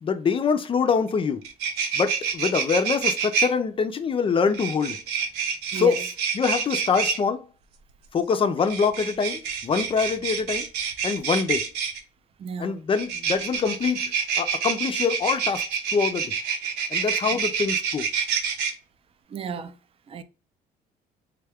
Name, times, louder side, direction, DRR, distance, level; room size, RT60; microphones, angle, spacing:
voice 1, 0.0-1.4 2.0-5.0 5.7-6.0 6.3-7.5 8.1-10.7 11.0-11.7 12.6-15.6 15.9-16.3 16.9-18.0, left 5 dB, 30° left, 0.4 m, -24 dB
sound 1, 1.1-1.2 1.4-3.5 4.5-7.2 8.6-12.0 12.9-18.7, right 6 dB, 80° right, 0.8 m, -27 dB
voice 2, 5.7-6.0 12.4-12.8 19.3-19.8 20.1-20.2, right 5 dB, 35° right, 0.4 m, -32 dB
3.6 x 2.3 x 3.4 m
cardioid pair, 110°, 17 cm